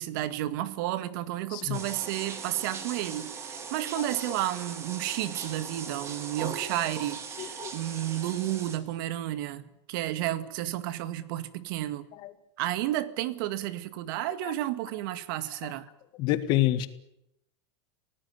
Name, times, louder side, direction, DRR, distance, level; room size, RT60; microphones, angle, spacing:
voice 1, 0.0-12.1 12.6-15.9, right 14 dB, 50° right, 1.9 m, -32 dB
voice 2, 1.5-1.8 7.4-7.7 14.4-14.5 16.2-16.9, left 14 dB, 30° left, 1.8 m, -27 dB
sound 1, 1.7-8.8, right 5 dB, 20° right, 2.9 m, -39 dB
25.0 x 18.5 x 9.6 m
supercardioid pair, 170°, 15 cm